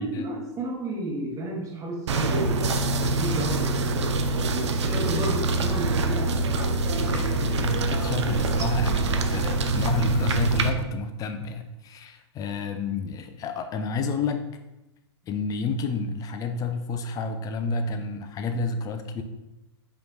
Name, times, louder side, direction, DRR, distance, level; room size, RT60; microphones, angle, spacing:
voice 1, 0.0-6.8, right 1 dB, 20° right, -2 dB, 1.1 m, -32 dB
sound 1, 2.1-10.7, right 2 dB, 80° right, 0.4 m, -25 dB
voice 2, 7.1-14.5 15.3-19.2, left 3 dB, 25° left, 7 dB, 0.4 m, -30 dB
5.0 x 3.1 x 2.5 m, 0.97 s
hypercardioid pair, 105°, 15 cm